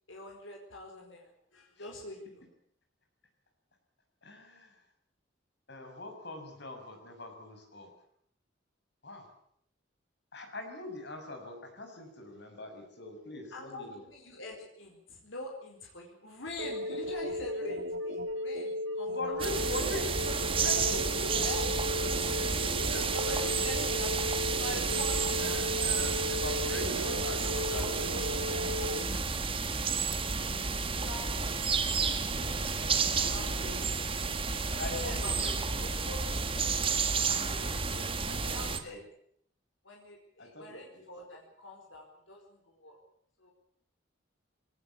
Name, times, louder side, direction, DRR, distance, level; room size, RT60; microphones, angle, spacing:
voice 1, 0.1-2.5 13.5-19.4 21.4-21.6 23.1-25.5 25.8-26.1 27.7-28.2 28.6-29.0 29.9-30.0 30.3-31.6 32.9-33.7 34.7-36.8 37.9-39.0 39.8-43.0 43.4-43.5, left 1 dB, 80° left, 1 dB, 4.6 m, -44 dB
voice 2, 4.2-4.8 5.7-7.9 9.0-9.3 10.3-14.0 19.1-22.2 22.5-23.9 25.4-29.2 32.3-33.8 34.8-35.6 37.3-39.0 40.4-41.0, left 2 dB, 60° left, 4 dB, 6.4 m, -43 dB
sound 1, 16.6-29.0, left 1 dB, 85° right, 2.0 m, -35 dB
sound 2, 19.4-38.8, right 5 dB, 30° right, 1.8 m, -31 dB
22.0 x 18.5 x 8.4 m, 0.67 s
head